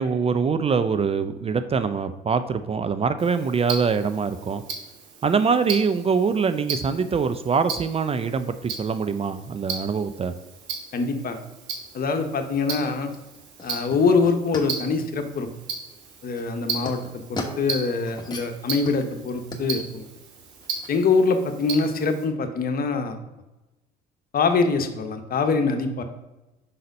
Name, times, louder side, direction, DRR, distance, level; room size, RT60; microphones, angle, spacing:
voice 1, 0.0-4.6 5.2-10.3, right 5 dB, 30° right, 11 dB, 0.4 m, -24 dB
Tick-tock, 3.2-22.2, right 5 dB, 80° right, 1.3 m, -37 dB
voice 2, 10.9-11.4 11.9-13.1 13.6-15.5 16.2-20.1 20.9-23.2 24.3-26.0, left 4 dB, 45° left, 7 dB, 1.0 m, -24 dB
sound 1, 11.8-21.1, left 2 dB, 20° left, 1.3 m, -40 dB
5.7 x 3.9 x 5.2 m, 1.0 s
hypercardioid pair, 70°, 21 cm